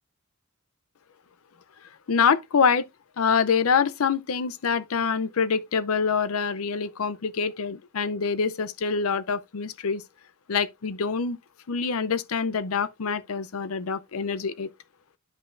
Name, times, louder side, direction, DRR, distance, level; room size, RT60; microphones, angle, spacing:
voice 1, 2.1-2.9 3.2-10.0 10.5-11.4 11.7-14.7, left 6 dB, 80° left, 0.6 m, -25 dB
9.8 x 5.5 x 2.5 m
head